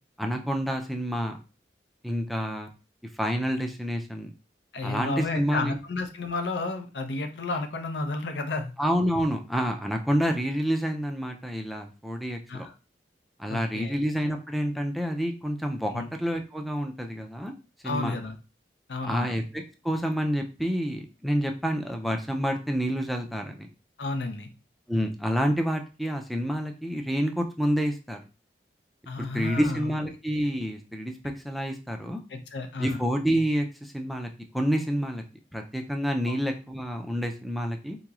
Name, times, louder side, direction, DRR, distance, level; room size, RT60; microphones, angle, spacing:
voice 1, 0.2-1.4 2.0-2.7 3.1-4.3 4.8-5.8 8.8-12.7 13.4-17.5 17.8-18.2 19.0-23.7 24.9-28.2 29.2-32.2 32.8-35.2 35.5-38.0, equal, ahead, 4 dB, 0.3 m, -28 dB
voice 2, 4.7-8.7 12.5-12.7 13.5-14.0 15.9-16.1 17.8-18.4 18.9-19.3 24.0-24.5 29.1-29.9 32.3-33.0 36.2-36.4, left 3 dB, 85° left, 6 dB, 0.6 m, -32 dB
3.9 x 2.9 x 2.3 m, 0.32 s
head